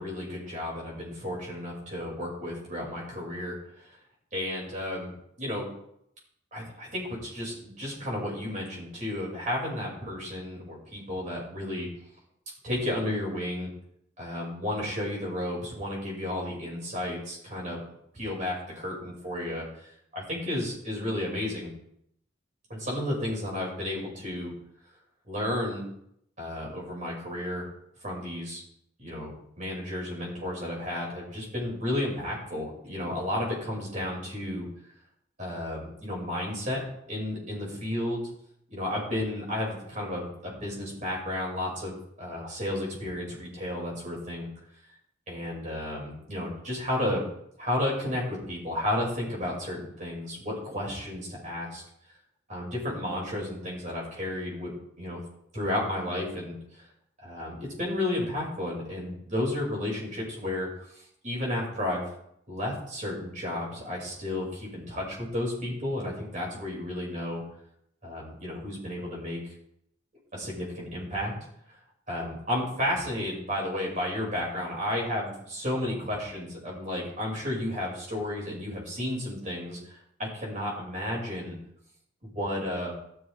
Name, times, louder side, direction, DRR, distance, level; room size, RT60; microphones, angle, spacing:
voice 1, 0.0-4.0 4.3-5.7 6.5-11.9 12.6-13.7 14.2-17.8 18.1-21.7 22.7-24.5 25.3-25.8 26.4-27.7 28.0-28.6 29.0-34.7 35.4-36.8 37.1-38.3 38.7-44.5 45.3-47.3 47.6-51.8 52.5-54.7 55.0-55.2 55.5-56.6 57.2-60.7 61.2-62.1 62.5-67.4 68.0-69.4 70.3-71.4 72.1-81.6 82.2-82.9, left 1 dB, 40° right, -3 dB, 6.2 m, -32 dB
15.5 x 13.0 x 3.6 m, 0.73 s
head